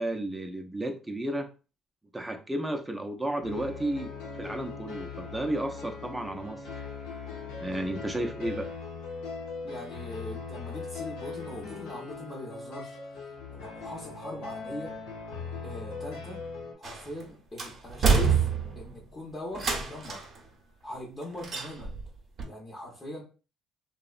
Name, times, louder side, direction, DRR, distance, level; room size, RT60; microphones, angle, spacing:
voice 1, 0.0-1.5 2.1-4.1 4.4-6.9 7.6-8.7, right 1 dB, 10° right, 4 dB, 0.5 m, -33 dB
sound 1, 3.4-16.7, left 4 dB, 85° left, 0.7 m, -40 dB
voice 2, 9.6-13.0 13.5-14.9 15.6-16.4 16.8-18.5 18.8-20.2 20.8-21.9 22.4-23.2, left 1 dB, 30° left, -3 dB, 0.7 m, -40 dB
sound 2, 16.8-17.2 17.6-19.0 19.6-20.4 21.4-22.1 22.4-22.5, right 5 dB, 50° right, 0.7 m, -26 dB
2.7 x 2.0 x 2.4 m, 0.35 s
cardioid pair, 90°, 0 cm